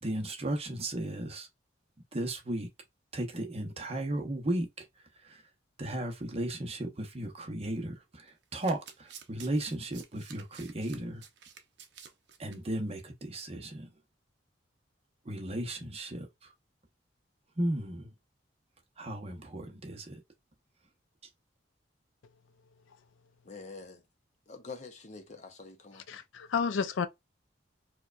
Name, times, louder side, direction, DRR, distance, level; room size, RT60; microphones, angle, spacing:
voice 1, 0.0-1.5 2.1-2.7 3.1-4.8 5.2-5.4 5.8-11.3 12.4-13.9 15.2-16.3 17.6-18.1 19.0-20.2, right 1 dB, 35° right, 0.8 m, -35 dB
Domestic sounds home sounds, 8.4-12.6 12.9-13.1 13.4-13.5, right 7 dB, 60° right, 0.6 m, -51 dB
voice 2, 23.4-24.0 24.5-26.2, left 4 dB, 40° left, 0.7 m, -46 dB
voice 3, 26.1-27.1, left 6 dB, 90° left, 0.4 m, -31 dB
4.5 x 2.2 x 2.4 m
head